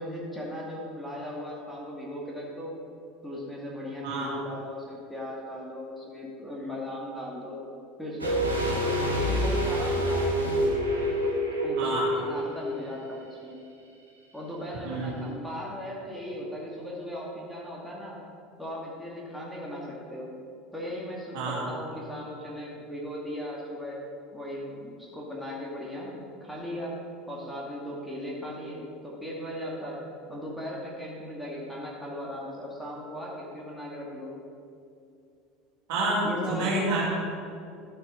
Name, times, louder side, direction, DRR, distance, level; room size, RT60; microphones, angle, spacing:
voice 1, 0.0-2.8 3.2-7.6 8.0-10.3 11.6-13.7 14.3-18.2 18.6-20.4 20.7-24.0 24.3-34.4 36.2-37.0, equal, ahead, -5 dB, 2.2 m, -37 dB
sound 1, 8.2-13.1 13.3-13.4, equal, 80° right, 1.1 m, -27 dB
voice 2, 11.8-12.1 14.8-15.1 21.3-21.6 35.9-37.0, right 2 dB, 55° right, -5 dB, 2.8 m, -28 dB
11.5 x 8.4 x 3.9 m, 2.5 s
figure-of-eight pair, 70°, 0 cm